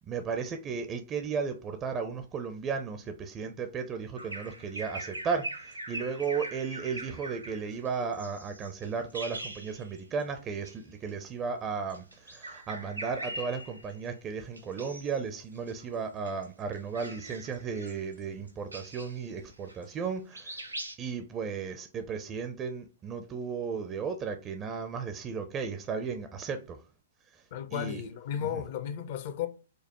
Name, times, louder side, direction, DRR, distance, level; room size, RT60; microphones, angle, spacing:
voice 1, 0.1-20.6 21.0-26.8 27.7-28.0 28.5-28.6, right 5 dB, 20° right, 0.4 m, -35 dB
Bird vocalization bird call bird song, 4.2-10.2 10.5-10.8 11.8-14.1 14.6-15.2 15.5-20.1 20.3-21.0, right 1 dB, 85° right, 0.7 m, -42 dB
voice 2, 27.5-29.5, left 9 dB, 45° left, 0.5 m, -34 dB
5.1 x 2.0 x 2.9 m
figure-of-eight pair, 110°, 0 cm